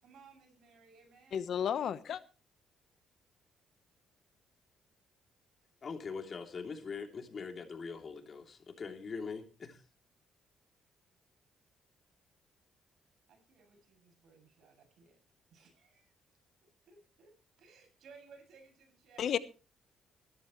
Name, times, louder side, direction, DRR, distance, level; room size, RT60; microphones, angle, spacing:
voice 1, 0.0-1.5 13.3-15.2 15.5-16.1 16.9-19.4, right 5 dB, 70° right, 7.2 m, -60 dB
voice 2, 1.3-2.2 19.2-19.4, left 8 dB, 65° left, 1.0 m, -32 dB
voice 3, 5.8-9.8, left 5 dB, 45° left, 3.0 m, -42 dB
20.5 x 12.5 x 3.1 m
cardioid pair, 90°, 0 cm